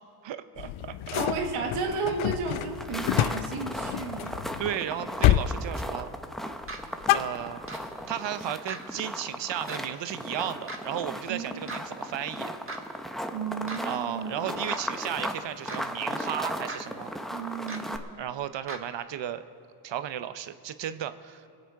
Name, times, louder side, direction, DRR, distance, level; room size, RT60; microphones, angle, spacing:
voice 1, 0.2-1.0 1.8-2.0 4.6-6.1 7.1-7.6 8.1-12.5 13.8-17.1 18.2-19.4 19.8-21.5, right 10 dB, 60° right, 12 dB, 0.8 m, -34 dB
sound 1, 0.6-4.8 5.2-5.6 5.9-6.3 6.6-7.9, left 13 dB, 70° left, 0.6 m, -28 dB
voice 2, 1.1-4.4 11.3-11.8 13.3-14.6 17.3-18.0, right 4 dB, 85° right, 3 dB, 1.7 m, -33 dB
sound 2, 2.6-18.0, equal, ahead, 0.9 m, -36 dB
sound 3, 6.7-6.8 7.7-7.8 8.7-8.8 9.7-9.8 10.7-10.8 11.7-11.8 12.7-12.8 13.7-13.8 14.7-14.8 15.7-15.8 16.7-16.8 17.7-17.8 18.7-18.8, right 3 dB, 25° right, 1.5 m, -37 dB
21.5 x 8.0 x 4.8 m, 2.3 s
supercardioid pair, 65°, 50 cm